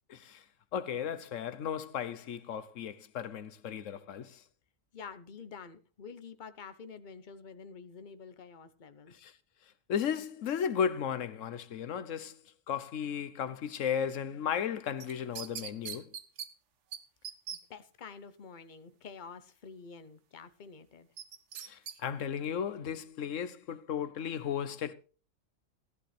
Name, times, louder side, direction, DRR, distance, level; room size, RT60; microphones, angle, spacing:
voice 1, 0.1-0.4 0.7-4.4 9.2-9.3 9.9-12.4 12.7-16.2 21.6-24.9, left 8 dB, 75° left, 1.2 m, -35 dB
voice 2, 4.9-9.1 17.5-21.1, left 5 dB, 40° left, 0.9 m, -48 dB
sound 1, 15.0-16.5 16.9-17.0 17.2-17.6 21.2-22.0 22.3-22.4, right 8 dB, 65° right, 1.2 m, -41 dB
15.5 x 10.5 x 3.3 m
omnidirectional pair, 1.4 m